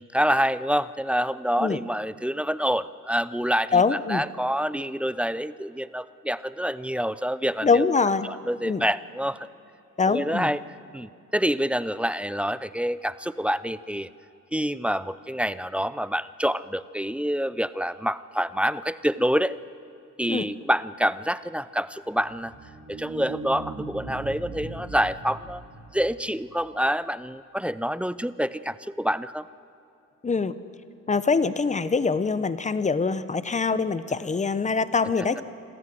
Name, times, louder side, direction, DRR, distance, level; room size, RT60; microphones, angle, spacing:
voice 1, 0.0-3.8 4.1-7.9 8.2-9.5 10.1-10.6 10.9-14.1 14.5-19.6 20.2-22.5 22.9-25.6 25.9-29.5, equal, 5° right, 16 dB, 0.4 m, -27 dB
voice 2, 3.7-4.2 7.6-8.3 8.6-8.8 10.0-10.5 20.3-20.5 30.2-30.6 31.1-35.4, left 4 dB, 25° left, 14 dB, 0.8 m, -24 dB
sound 1, 22.1-26.6, right 3 dB, 50° right, 3.3 m, -39 dB
26.5 x 14.0 x 7.7 m, 2.6 s
cardioid pair, 90°, 30 cm